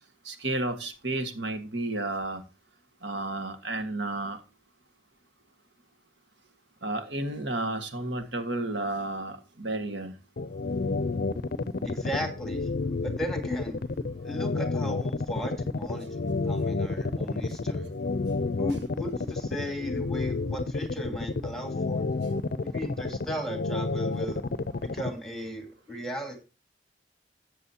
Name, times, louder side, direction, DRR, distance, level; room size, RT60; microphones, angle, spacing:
voice 1, 0.3-2.4 3.0-4.4 6.8-10.1, right 2 dB, 80° right, 8 dB, 1.8 m, -32 dB
sound 1, 10.4-25.1, left 3 dB, 55° left, 0.5 m, -30 dB
voice 2, 11.8-12.7 13.0-13.8 14.2-16.2 16.5-17.9 18.6-22.1 22.5-24.4 24.8-26.4, equal, ahead, 4 dB, 2.7 m, -36 dB
13.5 x 8.7 x 2.9 m, 0.30 s
head